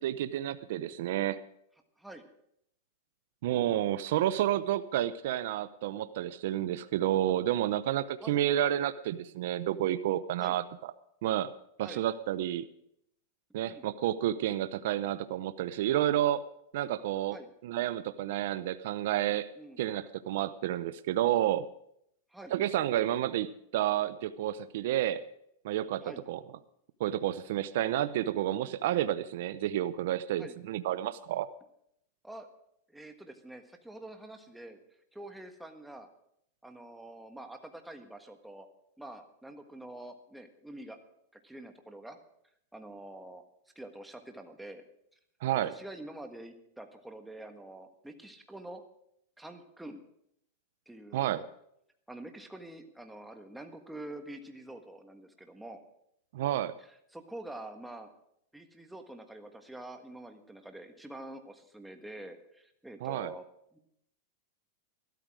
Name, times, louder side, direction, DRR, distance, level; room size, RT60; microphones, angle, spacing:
voice 1, 0.0-1.4 3.4-10.9 11.2-11.5 11.8-12.7 13.5-16.4 16.7-17.4 17.6-19.5 19.8-21.7 22.5-25.2 25.6-26.0 26.3-26.4 27.0-31.5 45.4-45.7 51.1-51.4 56.3-56.7 63.0-63.3, right 12 dB, 65° right, 13 dB, 0.6 m, -30 dB
voice 2, 32.9-34.8 35.1-36.1 36.6-38.7 39.0-41.0 41.3-42.2 42.7-43.4 43.7-44.8 45.6-48.8 49.4-50.0 50.9-51.5 52.1-55.8 56.8-58.1 58.5-63.8, right 1 dB, 5° right, 5 dB, 1.5 m, -46 dB
13.5 x 13.0 x 4.8 m, 0.73 s
supercardioid pair, 135°, 0 cm